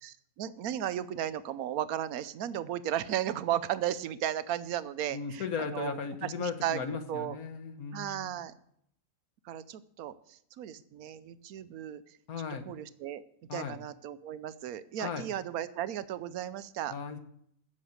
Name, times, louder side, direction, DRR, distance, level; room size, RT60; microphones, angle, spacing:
voice 1, 0.0-5.4 5.7-6.0 6.2-6.8 7.1-7.4 7.9-8.5 9.4-12.2 12.7-13.2 13.5-16.9, right 11 dB, 85° right, 15 dB, 1.2 m, -35 dB
voice 2, 5.1-8.3 12.3-12.7 13.5-13.8 15.0-15.3 16.9-17.2, left 5 dB, 80° left, 8 dB, 1.7 m, -36 dB
15.0 x 7.6 x 6.6 m, 0.70 s
omnidirectional pair, 1.5 m